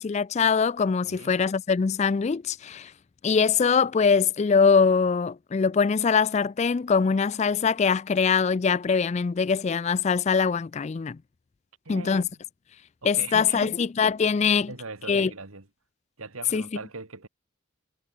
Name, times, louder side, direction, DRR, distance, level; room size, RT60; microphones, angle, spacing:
voice 1, 0.0-2.9 3.2-11.2 11.9-12.2 13.0-14.7 15.1-15.3 16.5-16.6, left 5 dB, 30° left, 0.3 m, -23 dB
voice 2, 1.0-1.4 11.9-12.4 13.0-13.7 14.7-15.7 16.2-17.3, right 3 dB, 85° right, 2.3 m, -40 dB
head